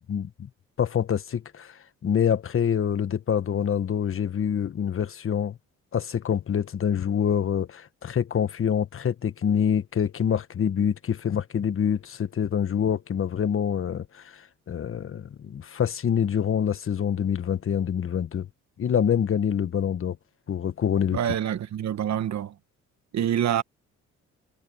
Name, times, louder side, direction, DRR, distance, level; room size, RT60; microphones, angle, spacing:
voice 1, 0.1-0.5 0.8-5.6 5.9-14.4 14.7-18.5 18.8-20.2 20.5-21.2, left 8 dB, 45° left, 1.4 m, -26 dB
voice 2, 21.1-22.6 23.1-23.6, right 10 dB, 65° right, 1.6 m, -26 dB
cardioid pair, 90°, 30 cm